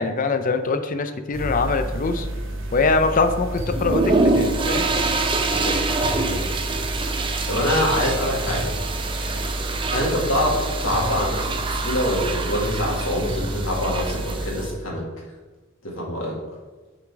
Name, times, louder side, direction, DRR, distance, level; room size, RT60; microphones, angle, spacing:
voice 1, 0.0-2.3 2.7-4.9, left 4 dB, 40° left, 9 dB, 0.5 m, -23 dB
sound 1, 1.3-14.5, right 1 dB, 65° right, 0.9 m, -30 dB
sound 2, 3.7-14.7, right 3 dB, 25° right, 0.5 m, -26 dB
voice 2, 5.4-5.8 6.2-6.5 7.0-8.7 9.9-15.0 15.8-16.4, left 1 dB, 75° left, -3 dB, 1.8 m, -25 dB
6.0 x 3.9 x 4.6 m, 1.3 s
head